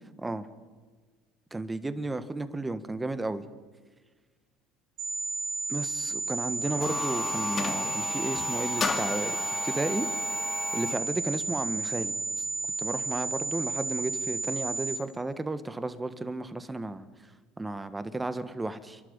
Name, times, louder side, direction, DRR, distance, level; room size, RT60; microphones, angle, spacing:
voice 1, 1.5-3.4 5.7-10.1 10.7-12.4 12.8-17.1 17.6-19.0, right 2 dB, 15° right, 12 dB, 1.5 m, -33 dB
sound 1, 5.0-15.0, right 3 dB, 55° right, 4.7 m, -32 dB
sound 2, 6.6-11.1, left 5 dB, 35° left, 2.0 m, -34 dB
29.0 x 11.5 x 9.0 m, 1.4 s
hypercardioid pair, 80°, 0 cm